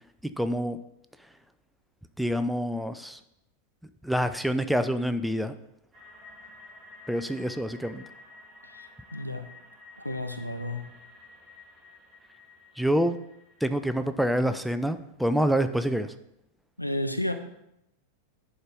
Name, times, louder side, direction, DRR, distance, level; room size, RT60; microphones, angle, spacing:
voice 1, 0.4-0.8 2.2-3.2 4.0-5.5 7.1-8.0 12.8-13.2 13.6-16.1, equal, ahead, 10 dB, 0.4 m, -26 dB
sound 1, 5.9-13.9, left 3 dB, 25° right, 3.1 m, -51 dB
voice 2, 9.1-9.5 10.0-10.9 16.8-17.3, left 1 dB, 85° left, 7 dB, 0.7 m, -31 dB
10.5 x 4.5 x 5.0 m, 0.82 s
figure-of-eight pair, 90°, 0 cm